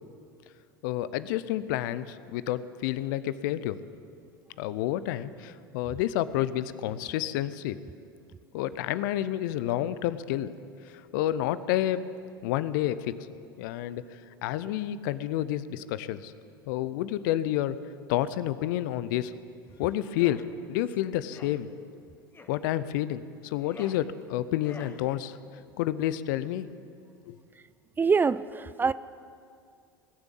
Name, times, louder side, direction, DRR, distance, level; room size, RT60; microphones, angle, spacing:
voice 1, 0.8-3.8 4.6-7.8 8.5-10.5 10.9-12.1 12.4-13.1 13.6-14.0 14.4-16.3 16.7-17.8 18.1-19.3 19.8-20.4 20.7-21.7 22.5-25.4 25.8-26.7 27.3-27.4, left 13 dB, 65° left, 0.6 m, -29 dB
sound 1, 20.0-20.5 21.2-21.6 22.3-22.6 23.4-24.0 24.6-25.0, left 4 dB, 20° left, 1.3 m, -48 dB
voice 2, 28.0-28.9, right 5 dB, 15° right, 0.3 m, -24 dB
19.0 x 7.0 x 8.4 m
hypercardioid pair, 80°, 12 cm